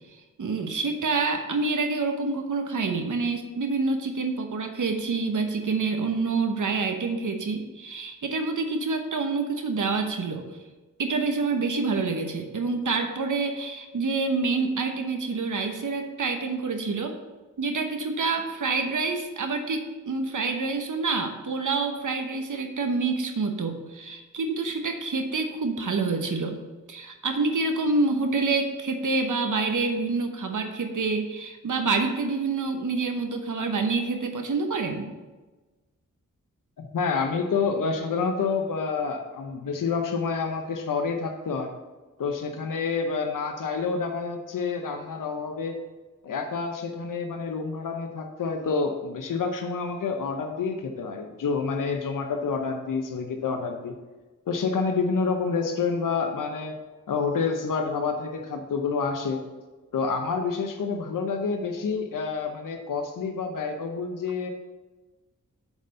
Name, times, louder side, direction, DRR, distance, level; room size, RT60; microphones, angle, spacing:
voice 1, 0.4-10.5 11.0-17.1 17.6-26.6 26.9-35.1, right 3 dB, 65° right, 5 dB, 1.1 m, -27 dB
voice 2, 36.8-41.7 42.2-45.8 46.2-53.9 54.5-56.8 57.1-59.4 59.9-64.5, left 5 dB, 70° left, 4 dB, 0.8 m, -28 dB
7.1 x 4.2 x 6.7 m, 1.2 s
cardioid pair, 60°, 33 cm